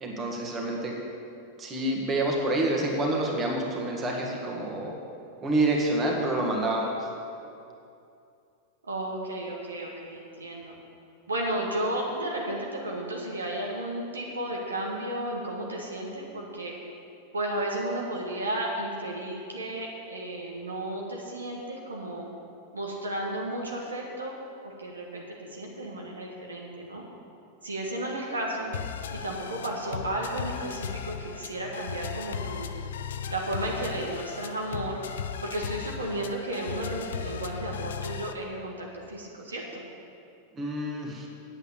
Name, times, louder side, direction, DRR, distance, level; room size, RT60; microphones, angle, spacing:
voice 1, 0.0-1.0 1.6-5.0 5.4-7.1 40.6-41.3, right 1 dB, 25° right, 0 dB, 1.9 m, -28 dB
voice 2, 8.9-10.8 11.3-16.7 17.3-22.3 22.7-24.4 24.6-25.2 25.5-27.0 27.6-28.8 29.1-32.7 33.3-35.0 35.4-39.8, right 1 dB, 75° right, -1 dB, 1.4 m, -33 dB
sound 1, 28.7-38.3, left 7 dB, 60° left, 0.5 m, -36 dB
8.8 x 8.3 x 7.2 m, 2.6 s
figure-of-eight pair, 90°, 0 cm